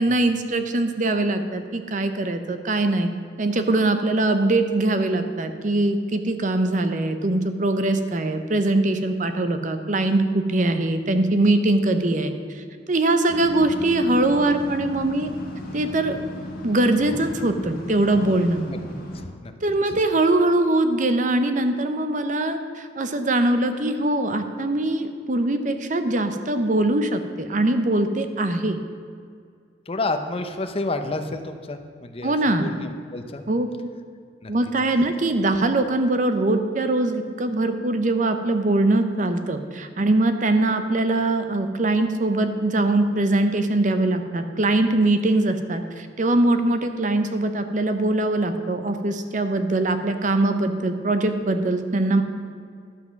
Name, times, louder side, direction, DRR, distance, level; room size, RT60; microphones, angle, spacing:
voice 1, 0.0-3.1 3.4-15.3 15.7-16.2 16.6-18.6 19.6-28.8 32.2-32.7 33.5-33.9 34.5-52.2, right 2 dB, 45° right, 8 dB, 0.7 m, -22 dB
sound 1, 13.3-19.3, equal, 55° left, 1.7 m, -36 dB
voice 2, 19.1-19.5 19.9-20.0 29.9-33.4 34.4-34.5, left 2 dB, 30° left, 7 dB, 0.6 m, -30 dB
12.0 x 5.9 x 5.9 m, 2.2 s
head